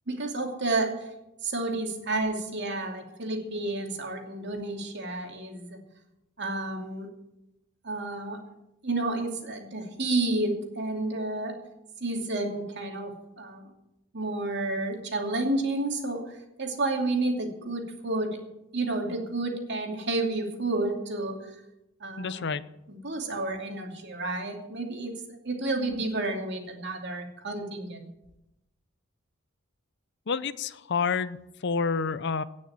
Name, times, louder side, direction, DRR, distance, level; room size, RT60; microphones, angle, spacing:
voice 1, 0.1-0.9 1.4-5.8 6.4-7.1 7.8-8.4 8.8-11.5 12.0-13.7 14.1-18.3 18.7-21.3 22.0-22.5 22.9-25.1 25.4-28.1, right 2 dB, 60° right, 2 dB, 2.6 m, -30 dB
voice 2, 22.2-22.7 30.3-31.4 31.6-32.4, left 5 dB, 60° left, 15 dB, 0.6 m, -28 dB
17.5 x 6.4 x 8.6 m, 0.90 s
head